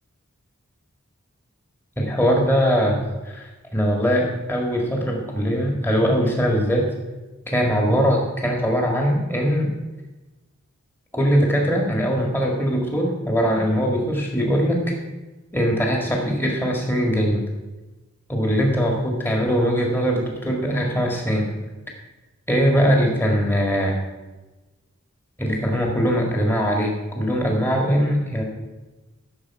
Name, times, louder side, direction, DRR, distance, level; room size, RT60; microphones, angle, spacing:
voice 1, 2.0-6.9 7.5-9.7 11.1-14.9 15.5-17.5 18.3-21.5 22.5-24.0 25.4-28.4, equal, 10° left, 0 dB, 1.8 m, -21 dB
13.5 x 6.6 x 4.7 m, 1.1 s
head